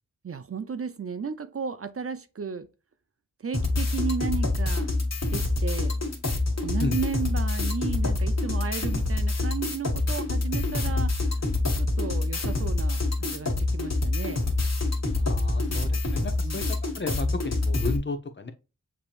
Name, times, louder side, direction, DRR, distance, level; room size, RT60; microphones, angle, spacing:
voice 1, 0.2-2.7 3.4-4.9 5.3-5.9 6.6-11.3 11.8-14.4 15.7-16.0 16.4-16.6, right 6 dB, 45° right, 0.5 m, -34 dB
sound 1, 3.5-18.0, left 2 dB, 50° left, 1.4 m, -26 dB
voice 2, 15.2-16.6 16.9-18.5, left 3 dB, 35° left, 0.8 m, -33 dB
6.8 x 2.9 x 2.5 m
wide cardioid pair, 65°, 33 cm